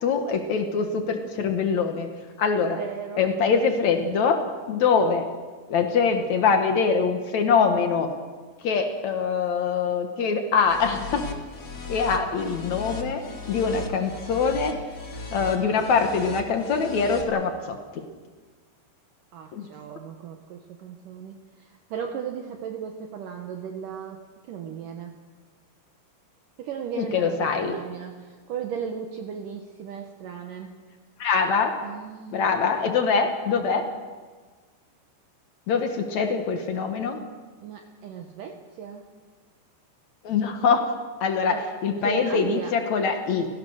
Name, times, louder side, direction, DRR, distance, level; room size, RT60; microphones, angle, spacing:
voice 1, 0.0-2.1 2.4-2.8 3.2-5.3 5.7-8.1 8.6-11.2 11.9-13.2 13.5-14.8 15.3-18.0 19.5-19.7 27.0-27.8 31.2-31.7 32.3-33.8 35.7-37.2 40.2-40.8 41.2-41.6 41.8-43.5, left 5 dB, 75° left, 5 dB, 1.6 m, -23 dB
voice 2, 2.8-3.3 4.7-5.0 19.3-25.2 26.6-30.7 31.8-32.4 37.6-39.1 41.4-41.7 42.0-42.7, right 7 dB, 75° right, 3 dB, 2.0 m, -36 dB
sound 1, 10.6-17.2, left 3 dB, 35° left, 1.8 m, -37 dB
30.0 x 17.5 x 6.5 m, 1.4 s
omnidirectional pair, 5.6 m